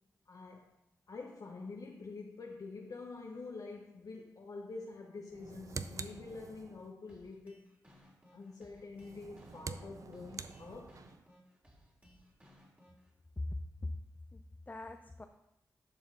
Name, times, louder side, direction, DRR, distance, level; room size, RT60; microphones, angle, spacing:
voice 1, 0.3-0.7 1.1-7.7 8.3-11.0, left 3 dB, 60° left, 0 dB, 0.8 m, -47 dB
sound 1, 5.3-6.9 8.9-11.2, right 5 dB, 55° right, 0.4 m, -46 dB
sound 2, 7.1-13.1, equal, 20° right, 2.6 m, -62 dB
voice 2, 13.4-14.1 14.3-15.3, left 2 dB, 25° left, 6 dB, 0.5 m, -41 dB
11.0 x 4.2 x 3.8 m, 0.85 s
supercardioid pair, 40°, 7 cm